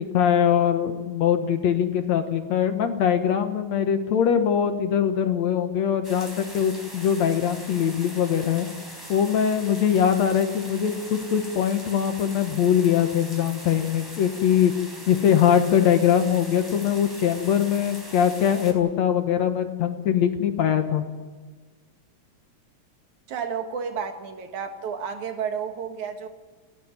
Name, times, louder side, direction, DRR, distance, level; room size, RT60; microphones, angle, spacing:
voice 1, 0.0-8.7 9.1-14.7 15.1-21.0, left 8 dB, 65° left, 7 dB, 2.2 m, -22 dB
sound 1, 6.0-18.7, equal, 5° right, 3.8 m, -41 dB
voice 2, 23.3-26.3, right 6 dB, 65° right, 6 dB, 2.9 m, -31 dB
30.0 x 11.0 x 9.5 m, 1.4 s
omnidirectional pair, 3.8 m